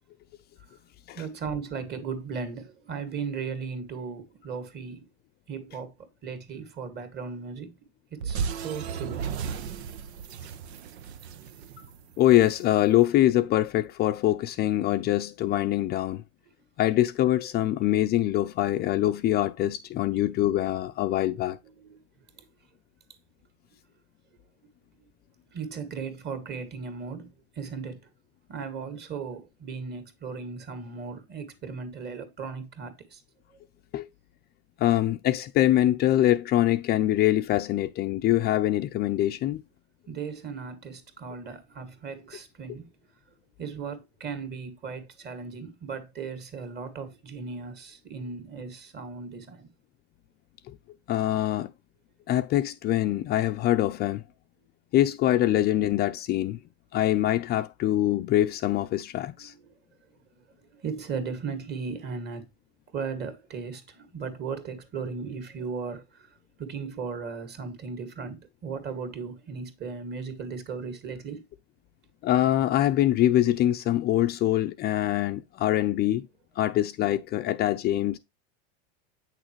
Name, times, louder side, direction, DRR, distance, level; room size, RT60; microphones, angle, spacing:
voice 1, 1.1-5.0 5.5-7.8 8.1-9.2 21.8-22.0 25.5-27.3 27.6-28.0 28.5-33.2 40.1-42.9 43.6-49.7 59.4-59.6 60.8-62.5 62.9-66.3 66.6-71.4, right 5 dB, 30° right, 2.2 m, -36 dB
sound 1, 8.2-12.6, right 6 dB, 90° right, 1.1 m, -34 dB
voice 2, 12.2-16.2 16.8-21.6 33.9-34.1 34.8-39.6 50.7-50.8 51.1-51.7 52.3-54.2 54.9-56.6 56.9-59.5 72.2-76.3 76.6-78.2, left 13 dB, 30° left, 0.5 m, -24 dB
8.8 x 6.3 x 3.1 m
supercardioid pair, 145°, 31 cm